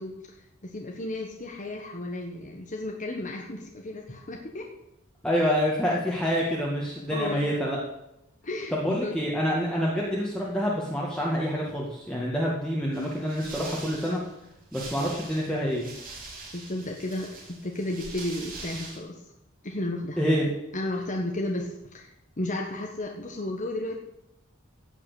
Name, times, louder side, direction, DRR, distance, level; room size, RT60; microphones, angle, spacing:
voice 1, 0.0-4.7 7.1-7.5 8.4-9.2 16.5-19.2 19.6-20.2 20.7-23.9, left 1 dB, 40° left, 1 dB, 1.3 m, -33 dB
voice 2, 5.2-7.8 8.7-14.2 14.7-15.9 20.2-20.5, equal, 5° left, -5 dB, 2.0 m, -27 dB
sound 1, 12.9-19.0, right 3 dB, 45° right, 4.2 m, -43 dB
16.0 x 6.0 x 8.5 m, 0.87 s
head